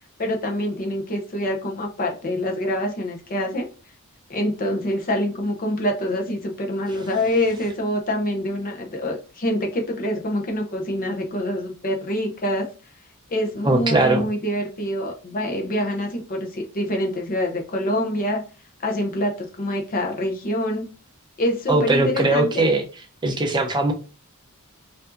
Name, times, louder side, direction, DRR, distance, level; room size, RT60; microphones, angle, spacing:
voice 1, 0.2-3.7 4.3-12.7 13.3-18.4 18.8-20.8 21.4-22.6, left 1 dB, 40° left, 2 dB, 0.7 m, -25 dB
voice 2, 13.6-14.3 21.7-22.8 23.2-23.9, right 2 dB, 20° right, 3 dB, 0.6 m, -20 dB
4.6 x 2.6 x 2.6 m, 0.35 s
head